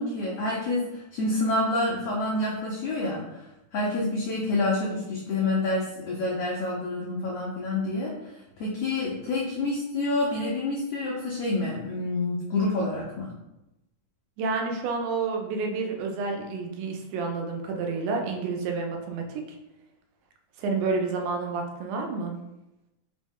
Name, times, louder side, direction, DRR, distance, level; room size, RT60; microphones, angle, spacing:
voice 1, 0.0-13.3, left 2 dB, 80° left, -4 dB, 1.3 m, -28 dB
voice 2, 14.4-19.6 20.6-22.3, right 4 dB, 90° right, 2 dB, 2.1 m, -29 dB
4.9 x 2.1 x 3.5 m, 0.92 s
omnidirectional pair, 3.5 m